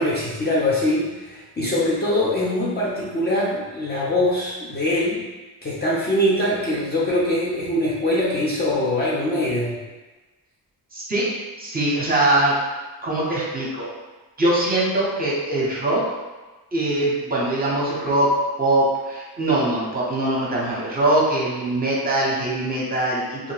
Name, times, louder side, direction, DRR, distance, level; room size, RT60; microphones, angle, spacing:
voice 1, 0.0-5.2 5.6-9.8, left 1 dB, 25° left, -7 dB, 0.5 m, -23 dB
voice 2, 10.9-11.2 11.6-12.5 13.0-13.9 14.4-16.0 16.7-18.3 18.6-23.5, right 1 dB, 20° right, -5 dB, 0.7 m, -22 dB
2.5 x 2.1 x 3.3 m, 1.2 s
cardioid pair, 110°, 40 cm